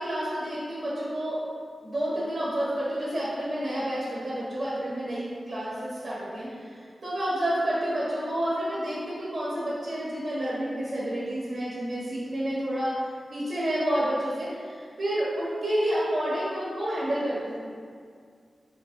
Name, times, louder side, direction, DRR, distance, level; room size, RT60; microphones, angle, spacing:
voice 1, 0.0-1.4 1.8-6.7 7.0-12.9 13.3-17.6, right 1 dB, 50° right, -8 dB, 1.4 m, -29 dB
5.9 x 3.7 x 4.5 m, 2.1 s
wide cardioid pair, 120°, 0 cm